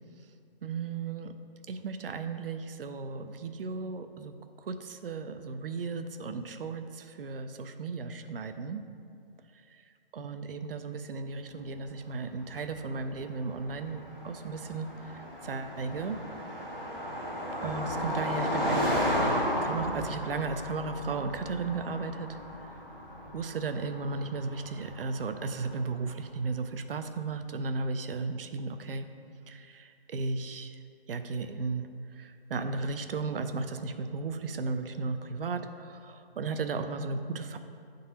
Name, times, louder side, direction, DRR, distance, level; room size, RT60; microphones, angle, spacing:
voice 1, 0.6-1.3 1.7-4.3 4.6-8.8 9.7-9.8 10.1-14.9 15.1-16.2 17.6-22.4 23.3-29.1 29.5-30.8 31.1-31.9 32.1-37.6, right 4 dB, 65° right, 8 dB, 0.5 m, -35 dB
Car passing by, 12.3-26.0, equal, 5° right, 0.6 m, -34 dB
9.5 x 3.9 x 2.7 m, 2.4 s
hypercardioid pair, 170°, 30 cm